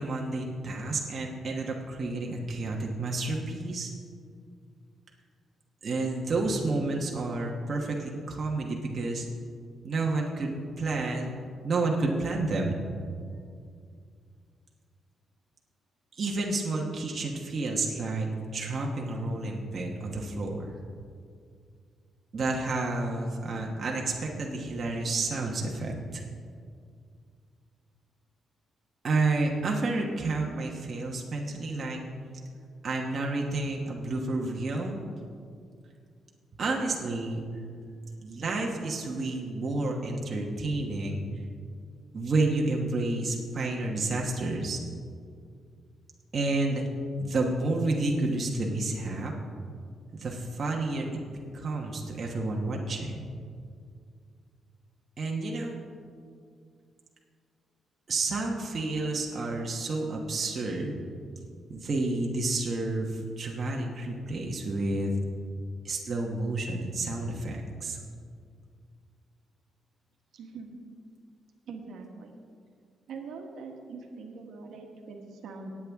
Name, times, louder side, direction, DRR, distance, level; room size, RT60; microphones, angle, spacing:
voice 1, 0.0-3.9 5.8-9.2 9.8-11.3 11.6-12.8 16.2-20.7 22.3-26.2 29.0-32.0 32.8-35.0 36.6-37.4 38.2-41.2 42.1-44.8 46.3-46.9 47.2-49.3 50.1-51.1 51.5-53.3 55.2-55.8 58.1-61.0 61.7-65.1 65.8-68.0, right 2 dB, 40° right, -1 dB, 1.2 m, -30 dB
voice 2, 70.3-70.7 71.7-72.3 73.1-75.7, right 4 dB, 75° right, 2 dB, 1.4 m, -43 dB
18.0 x 8.6 x 3.6 m, 2.2 s
cardioid pair, 150°, 0 cm